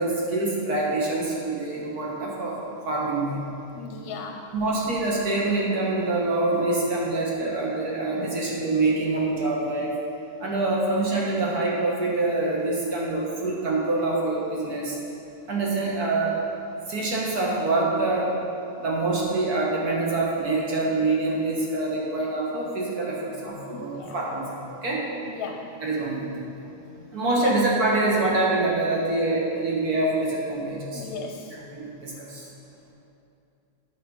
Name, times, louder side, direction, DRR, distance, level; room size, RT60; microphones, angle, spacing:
voice 1, 0.0-2.6 2.8-3.4 4.5-9.9 10.4-15.0 15.5-16.4 16.9-18.3 18.8-25.0 25.8-26.7 27.1-31.1 31.7-32.4, right 2 dB, 40° right, -4 dB, 1.6 m, -25 dB
voice 2, 3.8-4.5 23.7-24.2 25.3-25.7 27.4-27.6 30.9-31.6, left 5 dB, 75° left, 3 dB, 1.8 m, -36 dB
9.1 x 7.9 x 5.5 m, 2.7 s
omnidirectional pair, 3.5 m